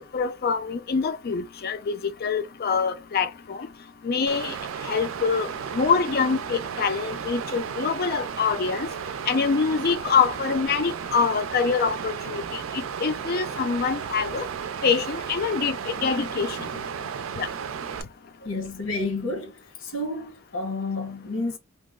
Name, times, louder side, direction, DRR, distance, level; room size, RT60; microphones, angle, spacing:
voice 1, 0.0-3.7 4.0-4.5 4.9-8.9 9.3-12.4 12.7-14.4 14.8-16.6 17.4-17.5, left 5 dB, 50° left, 0.4 m, -25 dB
Water, 4.3-18.0, right 7 dB, 85° right, 0.4 m, -34 dB
voice 2, 18.4-19.5 19.8-21.6, left 2 dB, 80° left, 1.0 m, -30 dB
2.9 x 2.0 x 3.6 m
head